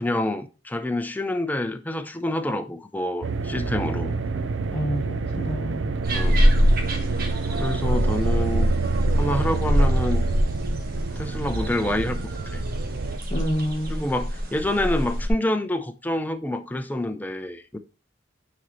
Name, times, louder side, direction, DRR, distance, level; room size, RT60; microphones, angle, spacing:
voice 1, 0.0-4.2 6.1-6.4 7.5-8.7 9.2-10.3 11.2-12.2 12.5-12.6 14.0-17.8, left 1 dB, 10° left, 0.5 m, -27 dB
sound 1, 3.2-13.2, right 4 dB, 85° right, 0.6 m, -28 dB
voice 2, 4.7-5.9 13.3-14.0, equal, 35° left, 1.2 m, -28 dB
sound 2, 6.0-15.3, equal, 55° right, 1.4 m, -24 dB
9.2 x 4.0 x 3.0 m
head